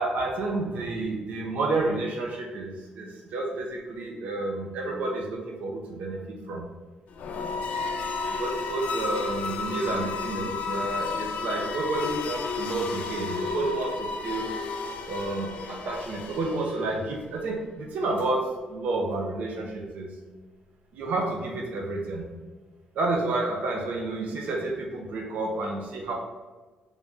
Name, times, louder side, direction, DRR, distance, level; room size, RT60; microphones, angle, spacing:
voice 1, 0.0-6.6 8.3-14.5 15.1-20.1 20.9-22.3 22.9-26.1, right 2 dB, 70° right, 0 dB, 0.6 m, -30 dB
sound 1, 7.1-17.0, left 4 dB, 65° left, 0.3 m, -32 dB
3.5 x 2.7 x 3.6 m, 1.3 s
cardioid pair, 145°, 3 cm